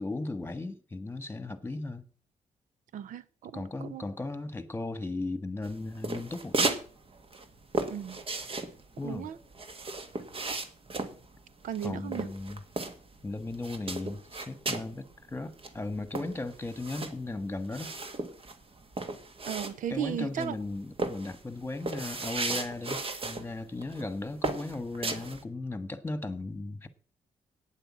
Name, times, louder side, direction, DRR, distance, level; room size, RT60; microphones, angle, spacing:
voice 1, 0.0-2.0 3.5-6.8 9.0-9.3 11.8-12.6 13.2-18.0 19.9-26.9, left 2 dB, 15° left, 1.5 m, -36 dB
voice 2, 2.9-4.0 7.9-8.2 9.0-9.4 11.6-12.3 19.4-20.5, right 10 dB, 80° right, 0.7 m, -36 dB
sound 1, 5.6-6.9 7.1-13.2 13.5-14.9 15.3-15.4 15.6-20.1 20.4-20.7 21.0-23.5 23.8-24.1 24.4-25.4, right 3 dB, 45° right, 1.7 m, -35 dB
9.3 x 7.8 x 7.5 m
cardioid pair, 80°, 13 cm